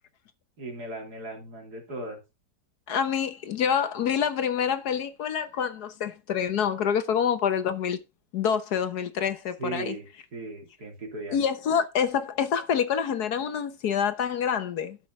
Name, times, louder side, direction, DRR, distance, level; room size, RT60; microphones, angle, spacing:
voice 1, 0.6-2.2 9.6-11.4, right 2 dB, 60° right, 3.4 m, -37 dB
voice 2, 2.9-8.0 8.3-9.9 11.3-15.0, left 7 dB, 65° left, 1.4 m, -27 dB
12.0 x 5.7 x 4.7 m
omnidirectional pair, 1.9 m